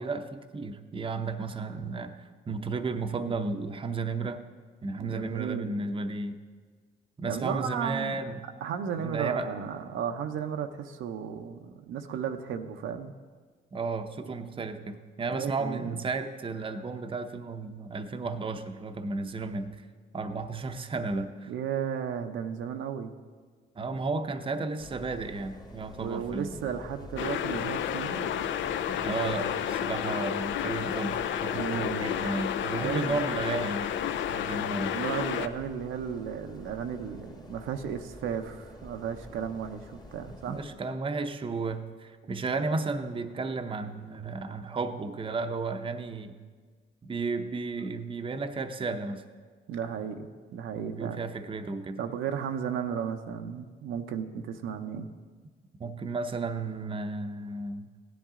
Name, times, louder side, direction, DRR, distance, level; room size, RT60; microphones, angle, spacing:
voice 1, 0.0-4.4 4.8-6.4 7.2-8.4 9.0-9.5 13.7-19.8 20.1-21.5 23.8-26.6 28.9-33.9 34.3-35.0 40.5-46.4 47.0-49.2 50.8-52.0 55.8-57.9, right 3 dB, 25° right, 7 dB, 0.7 m, -33 dB
voice 2, 5.0-5.8 7.2-8.3 8.6-13.1 15.3-16.0 21.5-23.1 26.0-28.4 29.9-30.0 31.5-32.0 32.7-33.3 34.9-40.6 49.7-51.2 52.0-55.1, right 8 dB, 80° right, 6 dB, 0.7 m, -34 dB
sound 1, 24.8-40.7, left 1 dB, 20° left, 1.3 m, -48 dB
sound 2, 27.2-35.5, left 9 dB, 75° left, 0.5 m, -31 dB
16.0 x 10.5 x 3.7 m, 1.5 s
cardioid pair, 90°, 20 cm